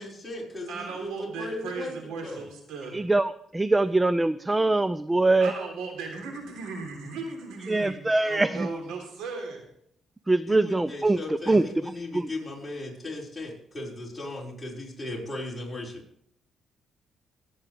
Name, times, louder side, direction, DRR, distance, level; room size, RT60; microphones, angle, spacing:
voice 1, 0.0-1.9 2.2-2.5 10.5-16.0, left 1 dB, 10° left, -3 dB, 5.5 m, -37 dB
voice 2, 0.7-3.0 5.4-8.0 8.2-9.6 11.5-11.6, right 4 dB, 90° right, 2 dB, 3.5 m, -36 dB
voice 3, 2.9-5.5 7.7-8.7 10.3-11.2 11.5-11.6 12.1-12.3, right 2 dB, 15° right, 15 dB, 0.4 m, -23 dB
24.5 x 8.8 x 3.4 m, 0.72 s
cardioid pair, 90°, 0 cm